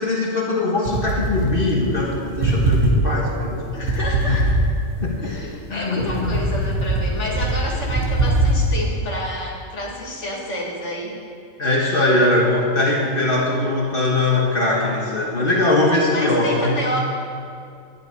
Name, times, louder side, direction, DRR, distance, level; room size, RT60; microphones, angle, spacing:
voice 1, 0.0-3.7 4.3-4.4 5.0-5.3 5.7-6.3 11.6-16.8, left 2 dB, 45° left, -2 dB, 1.4 m, -21 dB
sound 1, 0.9-2.1 2.3-5.0 5.5-8.8, right 1 dB, 75° right, 1.7 m, -21 dB
voice 2, 3.7-4.5 5.2-11.1 16.1-17.0, left 1 dB, 65° left, -3 dB, 2.4 m, -29 dB
11.5 x 10.5 x 4.7 m, 2.3 s
omnidirectional pair, 1.3 m